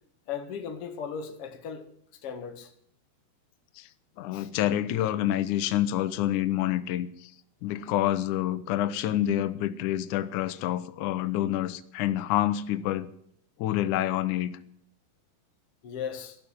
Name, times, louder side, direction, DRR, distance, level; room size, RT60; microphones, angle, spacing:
voice 1, 0.3-1.9 2.1-2.7 4.3-4.5 15.8-16.4, left 7 dB, 45° left, 2.1 m, -37 dB
voice 2, 4.2-7.3 7.6-13.1 13.6-14.5, left 13 dB, 90° left, 1.7 m, -27 dB
12.0 x 11.5 x 9.0 m
omnidirectional pair, 4.8 m